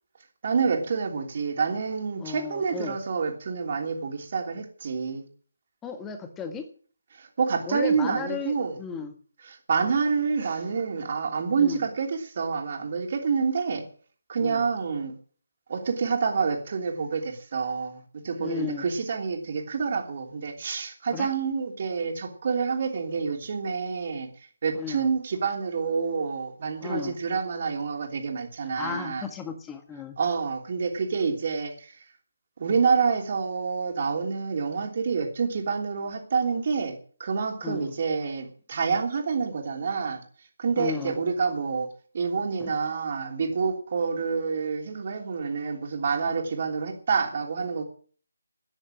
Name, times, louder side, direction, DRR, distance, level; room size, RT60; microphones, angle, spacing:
voice 1, 0.4-5.2 7.1-8.8 9.5-13.9 14.3-15.1 15.7-24.3 24.6-29.3 30.2-31.9 32.6-40.2 40.6-41.9 42.1-47.8, right 5 dB, 40° right, 3 dB, 3.0 m, -28 dB
voice 2, 2.2-3.0 5.8-6.6 7.7-9.1 11.6-11.8 14.4-14.6 18.4-18.9 21.1-21.3 24.8-25.1 26.8-27.2 28.8-30.2 37.6-37.9 40.8-41.2 42.6-42.7, left 6 dB, 10° left, 7 dB, 1.6 m, -35 dB
13.5 x 9.8 x 6.2 m, 0.43 s
figure-of-eight pair, 150°, 0 cm